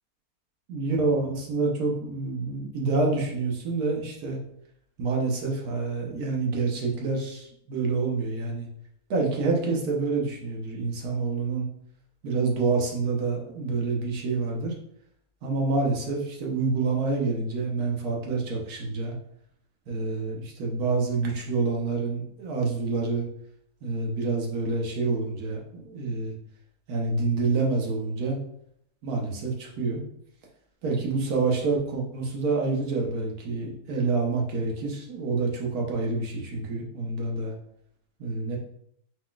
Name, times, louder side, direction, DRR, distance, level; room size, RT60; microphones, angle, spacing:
voice 1, 0.7-4.4 5.0-8.7 9.1-11.7 12.2-14.7 15.4-19.2 19.9-23.3 23.8-26.4 26.9-28.4 29.0-30.0 30.8-37.5 38.2-38.6, right 3 dB, 85° right, -1 dB, 1.4 m, -27 dB
5.0 x 3.8 x 2.4 m, 0.71 s
omnidirectional pair, 1.5 m